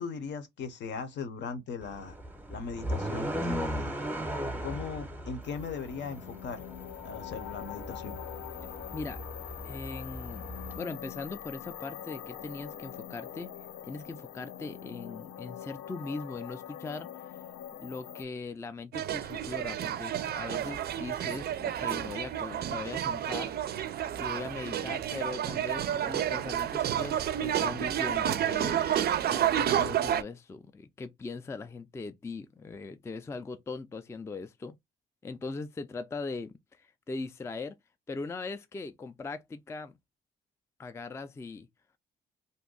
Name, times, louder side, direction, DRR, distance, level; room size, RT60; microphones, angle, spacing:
voice 1, 0.0-2.1 2.5-3.9 4.6-6.6 7.0-8.2, left 5 dB, 65° left, 0.8 m, -38 dB
sound 1, 1.8-10.8, equal, 10° right, 0.7 m, -38 dB
sound 2, 5.4-18.2, left 11 dB, 90° left, 0.4 m, -44 dB
voice 2, 9.6-10.5 10.7-13.5 13.8-17.1 17.7-23.8 24.2-28.9 29.3-34.7 35.2-37.8 38.1-40.0 40.8-41.7, left 3 dB, 15° left, 0.3 m, -40 dB
sound 3, 18.9-30.2, right 10 dB, 55° right, 0.4 m, -30 dB
2.6 x 2.2 x 3.8 m
cardioid pair, 90°, 20 cm